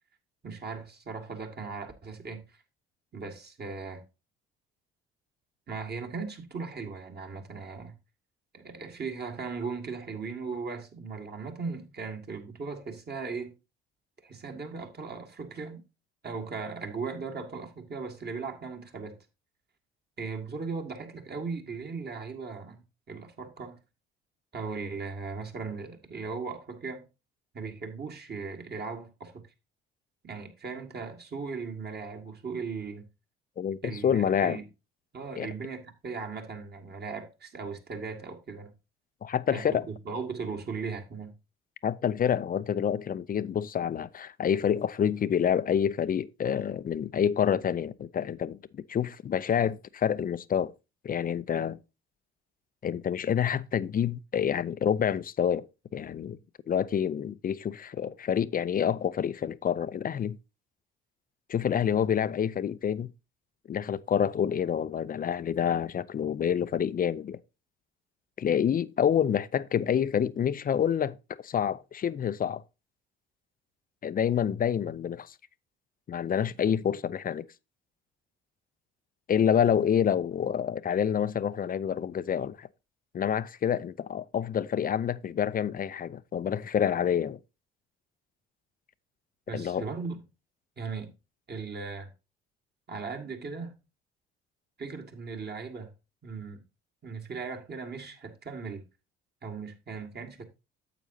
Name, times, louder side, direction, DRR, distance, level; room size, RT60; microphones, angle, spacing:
voice 1, 0.4-2.6 3.1-4.0 5.7-7.9 8.5-13.5 14.2-15.8 16.2-19.2 20.2-23.8 24.5-27.1 27.5-29.5 30.2-33.1 33.8-34.6 35.1-38.7 39.5-41.3 89.5-90.2 90.8-91.1 91.5-92.1 92.9-93.7 94.8-95.9 96.2-96.6 97.0-98.8 99.4-100.4, right 4 dB, 35° right, 2.0 m, -38 dB
voice 2, 33.6-34.6 35.4-35.5 39.2-39.9 41.8-50.7 51.0-51.8 52.8-55.6 55.9-56.4 56.7-60.4 61.5-63.1 63.7-67.4 68.4-72.6 74.0-75.3 76.1-77.4 79.3-82.7 83.1-87.4 89.5-89.9, left 8 dB, 30° left, 0.5 m, -28 dB
9.1 x 7.8 x 2.7 m
hypercardioid pair, 55°, 29 cm